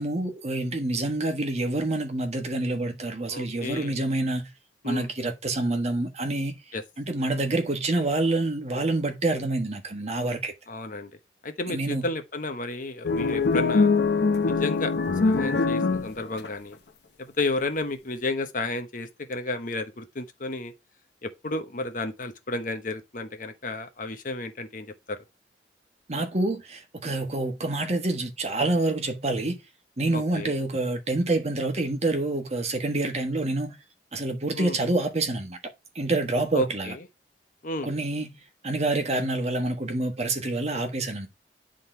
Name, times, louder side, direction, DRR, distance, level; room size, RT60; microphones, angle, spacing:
voice 1, 0.0-4.5 4.8-6.6 7.0-10.5 11.7-12.0 26.1-29.6 30.0-33.8 34.1-35.6 35.9-36.9 37.8-38.4 38.6-41.3, right 2 dB, 40° right, 1.3 m, -27 dB
voice 2, 3.3-4.0 4.8-5.1 6.7-6.8 10.7-11.1 11.4-13.9 14.5-14.9 15.2-16.8 17.2-20.7 21.2-25.2 30.1-30.6 34.5-34.8 36.5-37.0 37.6-37.9, left 2 dB, 50° left, 1.0 m, -32 dB
sound 1, 13.0-16.5, left 4 dB, 70° left, 0.7 m, -23 dB
9.8 x 3.8 x 4.4 m
head